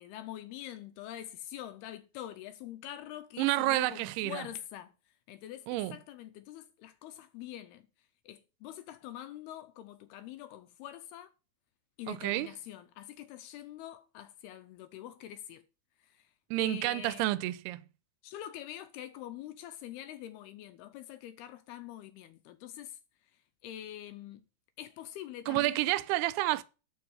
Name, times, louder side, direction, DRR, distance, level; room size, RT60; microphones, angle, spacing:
voice 1, 0.0-4.9 5.3-7.9 8.3-11.3 12.0-15.6 16.0-16.3 16.6-17.2 18.2-23.0 23.6-24.4 24.8-25.8, left 12 dB, 80° left, 2.5 m, -45 dB
voice 2, 3.4-4.4 5.7-6.0 12.1-12.5 16.5-17.8 25.5-26.6, right 17 dB, 80° right, 2.5 m, -29 dB
11.5 x 4.5 x 7.2 m
omnidirectional pair, 5.0 m